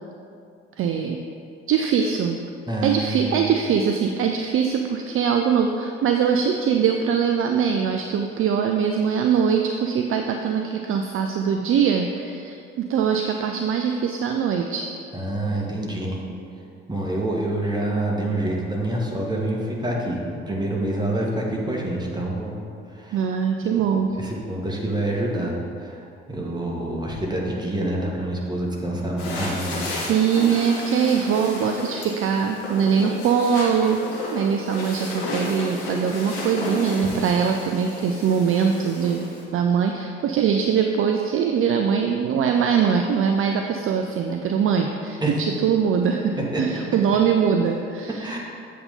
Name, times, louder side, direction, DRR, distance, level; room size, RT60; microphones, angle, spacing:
voice 1, 0.8-1.2 1.7-2.4 2.8-12.6 12.9-14.9 23.1-24.1 30.0-34.0 34.3-39.3 39.5-48.4, right 7 dB, 45° right, 4 dB, 0.5 m, -22 dB
voice 2, 2.7-3.5 15.1-16.2 16.9-22.6 23.0-23.2 24.1-25.5 25.8-26.0 26.3-30.1 45.2-45.3 46.5-46.6 48.2-48.4, right 1 dB, 15° right, -2 dB, 1.6 m, -27 dB
sound 1, 29.2-39.4, left 2 dB, 75° left, 1.4 m, -33 dB
8.0 x 3.7 x 5.4 m, 2.4 s
figure-of-eight pair, 45°, 31 cm